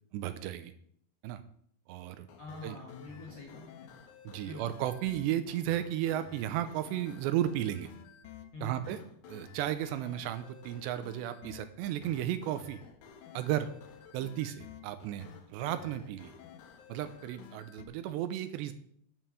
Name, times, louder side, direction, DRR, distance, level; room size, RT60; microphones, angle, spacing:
voice 1, 0.1-0.7 1.2-1.4 1.9-2.3 2.6-2.8 4.3-7.9 8.6-9.0 9.3-12.8 13.3-13.7 14.1-16.3 16.9-18.7, right 12 dB, 80° right, 11 dB, 2.8 m, -34 dB
sound 1, 2.3-17.9, left 7 dB, 85° left, 1.7 m, -52 dB
voice 2, 2.4-3.9 4.5-4.7 8.5-8.8 13.5-13.7, left 3 dB, 55° left, -2 dB, 1.8 m, -46 dB
9.2 x 5.8 x 6.9 m, 0.65 s
omnidirectional pair, 5.2 m